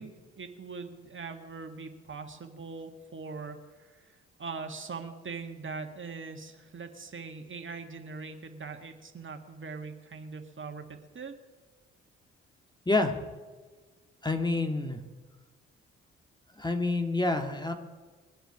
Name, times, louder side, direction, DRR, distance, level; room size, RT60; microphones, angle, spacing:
voice 1, 0.0-11.4, right 4 dB, 40° right, 5 dB, 1.7 m, -42 dB
voice 2, 14.2-15.0 16.6-17.7, left 2 dB, 15° left, 6 dB, 1.9 m, -27 dB
22.5 x 7.9 x 6.0 m, 1.4 s
hypercardioid pair, 45°, 31 cm